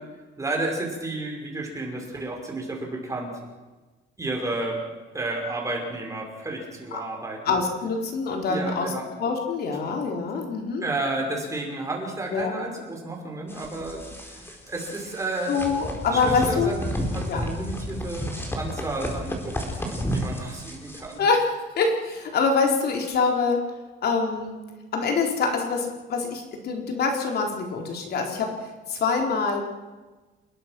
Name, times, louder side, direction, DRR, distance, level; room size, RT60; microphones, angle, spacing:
voice 1, 0.4-3.3 4.2-4.8 5.1-7.5 8.5-9.1 10.8-15.6 16.1-18.3 18.6-21.2, right 2 dB, 15° right, 1 dB, 5.5 m, -32 dB
voice 2, 7.5-8.9 9.2-10.8 12.3-12.5 15.5-16.7 17.3-17.4 21.2-21.4 21.8-23.6 24.0-24.6 24.9-28.5 28.9-29.6, left 4 dB, 55° left, 2 dB, 4.1 m, -25 dB
sound 1, 13.5-21.1, equal, 10° left, 4.3 m, -32 dB
28.5 x 21.0 x 6.2 m, 1.2 s
cardioid pair, 160°, 20 cm